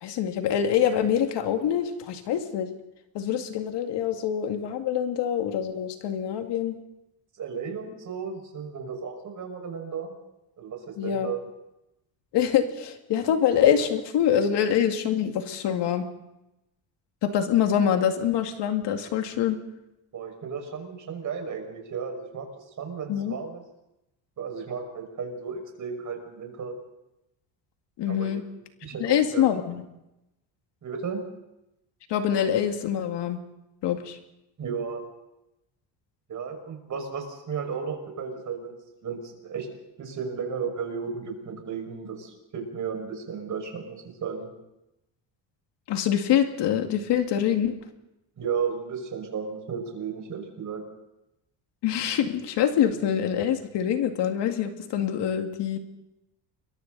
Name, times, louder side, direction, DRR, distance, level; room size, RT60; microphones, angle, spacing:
voice 1, 0.0-2.7 3.1-6.8 11.0-11.3 12.3-16.1 17.2-19.6 23.1-23.4 28.0-28.4 29.0-29.8 32.1-33.4 33.8-34.2 45.9-47.8 51.8-55.8, left 9 dB, 65° left, 6 dB, 2.2 m, -25 dB
voice 2, 7.4-10.1 10.6-11.4 20.1-23.6 24.4-26.7 28.1-28.3 28.8-29.5 30.8-31.2 34.6-35.0 36.3-38.7 39.0-39.7 40.0-44.5 48.4-50.8, right 6 dB, 40° right, 3 dB, 5.9 m, -34 dB
29.5 x 22.5 x 4.1 m, 0.91 s
cardioid pair, 130°, 45 cm